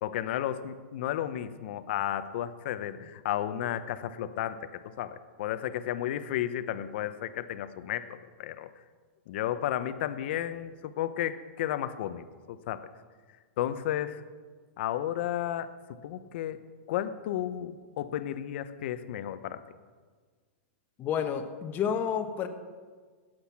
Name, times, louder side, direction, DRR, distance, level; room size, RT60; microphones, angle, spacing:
voice 1, 0.0-8.7 9.3-12.9 13.6-14.2 14.8-15.7 16.0-16.6 16.9-19.6, left 11 dB, 60° left, 12 dB, 0.9 m, -33 dB
voice 2, 21.0-22.5, left 8 dB, 30° left, 6 dB, 1.3 m, -30 dB
17.5 x 7.9 x 6.0 m, 1.5 s
hypercardioid pair, 135°, 7 cm